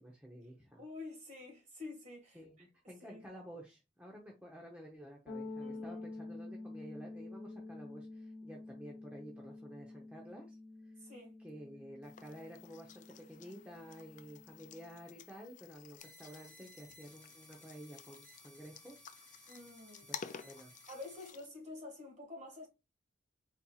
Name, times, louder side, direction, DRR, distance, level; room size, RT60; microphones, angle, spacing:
voice 1, 0.0-0.8 2.3-10.5 10.8-10.9 11.4-19.1 20.1-20.2 20.4-20.7, equal, 5° right, 0.7 m, -52 dB
voice 2, 0.8-2.7 3.0-3.2 5.6-6.1 11.0-11.4 19.5-20.1 20.9-22.7, left 2 dB, 40° right, 1.7 m, -49 dB
sound 1, 5.3-15.0, left 2 dB, 75° left, 0.9 m, -49 dB
sound 2, 12.0-21.5, left 7 dB, 40° left, 0.3 m, -53 dB
sound 3, 16.0-21.3, left 1 dB, 10° left, 1.7 m, -59 dB
4.3 x 4.1 x 2.3 m
head